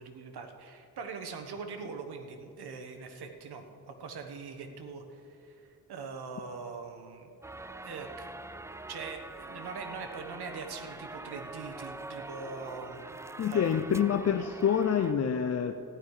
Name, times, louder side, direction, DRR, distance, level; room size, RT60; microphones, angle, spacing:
voice 1, 0.0-7.3 7.8-8.3 8.9-13.2 13.5-13.6, right 5 dB, 75° right, 5 dB, 1.3 m, -42 dB
sound 1, 7.4-15.1, right 2 dB, 10° right, 0.3 m, -44 dB
voice 2, 13.4-15.7, left 8 dB, 40° left, 6 dB, 0.5 m, -27 dB
14.5 x 11.0 x 4.9 m, 2.7 s
cardioid pair, 100°, 39 cm